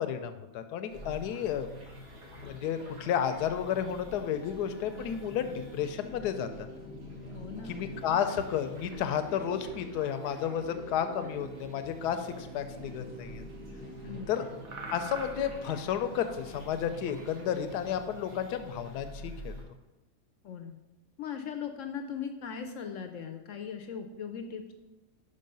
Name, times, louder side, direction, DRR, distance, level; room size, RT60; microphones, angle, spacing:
voice 1, 0.0-1.7 2.4-6.7 7.7-13.4 14.3-14.4 14.9-19.5, left 9 dB, 85° left, 9 dB, 1.2 m, -32 dB
sound 1, 0.9-19.6, equal, 85° right, 2.6 m, -45 dB
voice 2, 7.3-7.8 14.0-14.3 20.4-20.8 21.2-24.7, left 7 dB, 65° left, 6 dB, 0.8 m, -39 dB
sound 2, 8.9-18.1, right 3 dB, 60° right, 1.3 m, -51 dB
5.5 x 5.2 x 5.3 m, 1.1 s
omnidirectional pair, 1.7 m